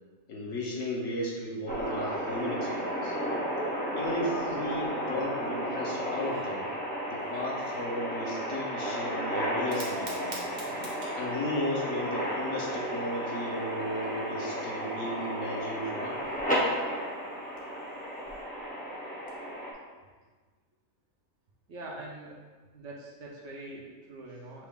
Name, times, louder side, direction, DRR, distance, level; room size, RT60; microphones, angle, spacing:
voice 1, 0.3-3.2 3.9-6.7 7.1-10.4 11.1-16.3, left 1 dB, 60° left, -3 dB, 1.1 m, -35 dB
sound 1, 1.7-19.7, equal, 10° left, 0.6 m, -33 dB
Fire, 9.5-18.4, right 2 dB, 40° right, 0.8 m, -50 dB
voice 2, 21.7-22.4 22.7-24.7, right 2 dB, 65° right, -2 dB, 1.0 m, -43 dB
5.9 x 2.4 x 3.5 m, 1.4 s
omnidirectional pair, 1.5 m